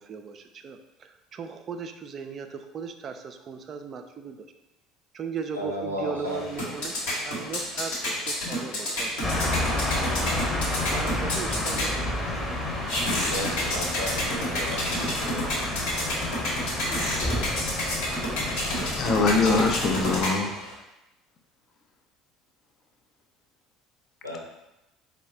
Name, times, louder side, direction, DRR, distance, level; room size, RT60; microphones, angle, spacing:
voice 1, 0.0-4.5 5.1-7.0 7.3-9.8 10.9-12.6, right 6 dB, 40° right, 7 dB, 0.3 m, -38 dB
voice 2, 5.5-6.4 13.3-15.4 18.7-19.1 24.2-24.4, left 1 dB, 90° left, -4 dB, 0.6 m, -34 dB
sound 1, 6.3-20.7, left 1 dB, 65° left, 1.1 m, -30 dB
sound 2, 9.2-20.3, left 1 dB, 15° left, 0.9 m, -30 dB
voice 3, 18.9-20.5, left 3 dB, 40° left, 3 dB, 0.6 m, -23 dB
4.6 x 2.1 x 4.2 m, 0.94 s
figure-of-eight pair, 60°, 0 cm